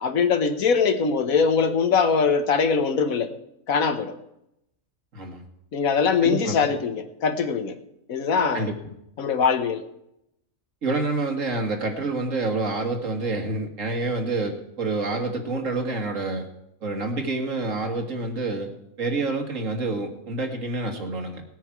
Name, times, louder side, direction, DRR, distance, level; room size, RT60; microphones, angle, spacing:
voice 1, 0.0-3.3 3.7-4.1 5.7-7.7 8.1-8.7 9.2-9.8, left 5 dB, 75° left, 9 dB, 1.4 m, -22 dB
voice 2, 5.1-5.5 6.2-6.6 8.5-8.7 10.8-16.5 16.8-18.7 19.0-21.4, right 3 dB, 60° right, 3 dB, 2.1 m, -27 dB
18.5 x 9.1 x 4.7 m, 0.82 s
omnidirectional pair, 1.5 m